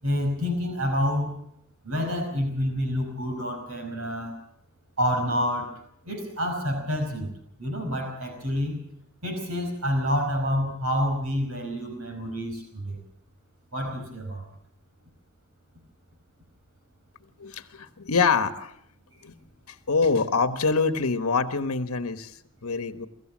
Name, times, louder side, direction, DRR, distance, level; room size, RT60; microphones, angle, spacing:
voice 1, 0.0-1.3 1.8-4.3 5.0-7.3 7.6-8.8 9.2-13.0 13.7-14.4, equal, 70° right, 4 dB, 5.0 m, -28 dB
voice 2, 17.4-18.8 19.2-19.3 19.7-23.1, left 4 dB, 80° left, 9 dB, 1.3 m, -25 dB
24.5 x 14.5 x 7.4 m, 0.72 s
head